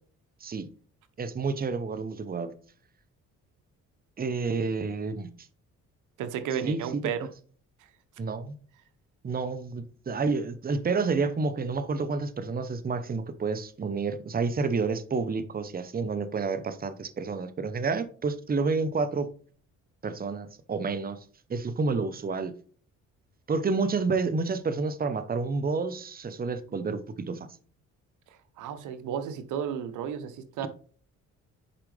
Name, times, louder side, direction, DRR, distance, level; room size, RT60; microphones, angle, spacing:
voice 1, 1.2-2.5 4.2-5.3 6.6-7.1 8.2-8.5 9.2-19.3 20.0-21.2 21.5-22.5 23.5-27.5, right 4 dB, 30° right, 0.9 m, -29 dB
voice 2, 6.2-7.2 28.6-30.7, right 8 dB, 85° right, 0.9 m, -33 dB
10.0 x 4.8 x 3.3 m
cardioid pair, 90°, 30 cm